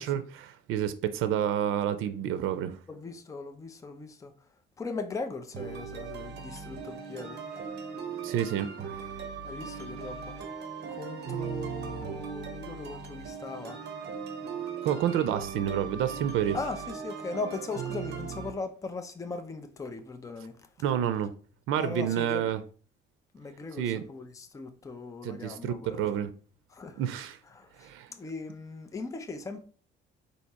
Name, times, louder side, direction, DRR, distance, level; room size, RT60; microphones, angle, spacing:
voice 1, 0.0-2.8 8.2-9.0 14.8-16.6 20.8-21.3 21.7-22.6 23.8-24.0 25.2-26.3 27.0-27.4 27.8-28.1, right 10 dB, 85° right, 0.5 m, -29 dB
voice 2, 2.9-4.3 4.8-7.6 9.4-10.4 10.9-13.8 16.5-20.7 21.8-22.5 23.3-26.2 26.7-27.0 27.4-29.6, left 3 dB, 15° left, 0.5 m, -39 dB
sound 1, 5.5-18.5, right 6 dB, 55° right, 0.9 m, -38 dB
4.1 x 2.8 x 4.6 m
cardioid pair, 135°, 20 cm